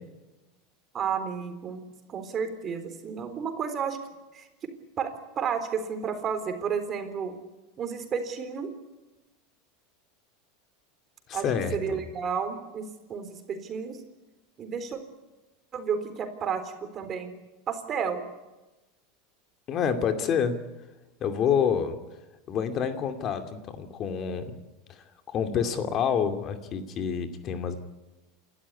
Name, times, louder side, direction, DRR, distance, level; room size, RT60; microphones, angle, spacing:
voice 1, 0.9-1.8 2.1-4.0 4.3-4.5 5.0-7.3 7.8-8.7 11.3-14.0 14.6-15.0 15.7-17.3 17.7-18.2, right 6 dB, 35° right, 8 dB, 3.9 m, -32 dB
voice 2, 11.3-12.0 19.7-20.5 21.2-22.0 22.5-24.5 25.3-27.8, left 7 dB, 40° left, 8 dB, 2.5 m, -27 dB
28.0 x 13.0 x 9.8 m, 1.1 s
hypercardioid pair, 100°, 0 cm